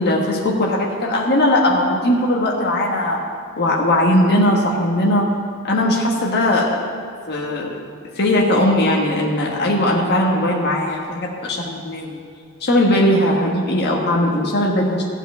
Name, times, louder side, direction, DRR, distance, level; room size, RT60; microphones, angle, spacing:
voice 1, 0.0-3.3 3.6-5.3 5.6-6.9 7.3-7.8 8.1-12.2 12.6-15.1, left 1 dB, 50° left, -2 dB, 1.3 m, -19 dB
14.5 x 4.9 x 9.0 m, 2.3 s
head